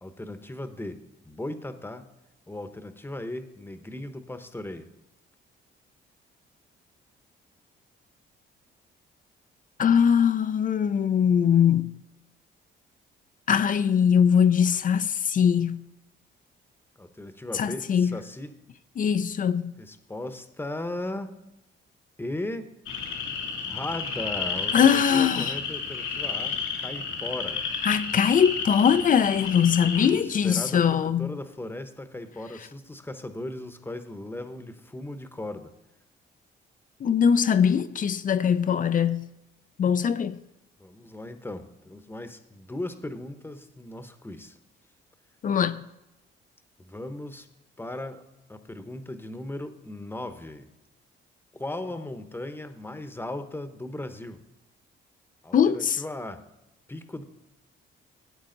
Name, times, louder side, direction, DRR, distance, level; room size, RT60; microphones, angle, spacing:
voice 1, 0.0-2.1 2.5-4.9 17.0-18.6 19.8-21.3 22.2-22.7 23.6-27.6 30.1-35.7 40.8-44.6 46.8-47.5 47.8-48.2 48.5-50.7 51.5-54.4 55.4-56.5 56.9-57.2, left 1 dB, 10° left, 1.0 m, -37 dB
voice 2, 9.8-12.0 13.5-15.8 17.5-18.2 19.0-19.7 24.7-25.6 27.8-31.4 37.0-39.3 39.8-40.4 45.4-45.8 55.5-56.0, left 7 dB, 45° left, 0.5 m, -22 dB
sound 1, 22.9-30.1, left 5 dB, 85° left, 2.5 m, -31 dB
13.0 x 8.5 x 3.9 m
cardioid pair, 90°, 20 cm